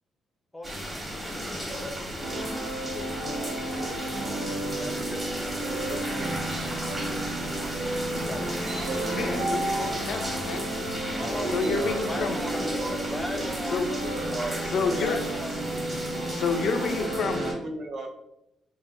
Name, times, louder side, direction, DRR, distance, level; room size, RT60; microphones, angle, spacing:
voice 1, 0.5-1.1 4.5-5.3 5.8-6.3 6.7-7.2 8.2-9.7 11.2-11.6 12.0-12.6 13.0-13.9 15.0-15.6, left 1 dB, 10° left, 4 dB, 0.5 m, -39 dB
sound 1, 0.6-17.5, equal, 20° right, 1.1 m, -34 dB
sound 2, 2.2-17.5, right 2 dB, 90° right, 0.8 m, -33 dB
voice 2, 9.1-10.6 11.5-12.4 13.7-13.9 14.7-15.2 16.3-17.4, left 4 dB, 65° left, 7 dB, 0.3 m, -29 dB
voice 3, 11.4-13.6 14.1-14.7 17.6-18.1, right 1 dB, 55° right, 3 dB, 0.6 m, -35 dB
3.2 x 2.0 x 3.3 m, 0.82 s
cardioid pair, 95°, 0 cm